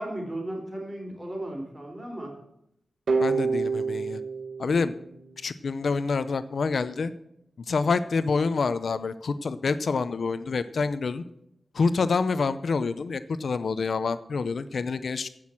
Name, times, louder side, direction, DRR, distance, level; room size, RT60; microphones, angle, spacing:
voice 1, 0.0-2.3, right 1 dB, 20° right, 1 dB, 4.0 m, -35 dB
sound 1, 3.1-5.9, right 4 dB, 85° right, 1.6 m, -28 dB
voice 2, 3.2-4.2 4.6-4.9 5.4-7.1 7.7-11.2 11.7-15.3, left 4 dB, 70° left, 13 dB, 0.6 m, -27 dB
15.0 x 6.2 x 7.2 m, 0.79 s
wide cardioid pair, 95°, 0 cm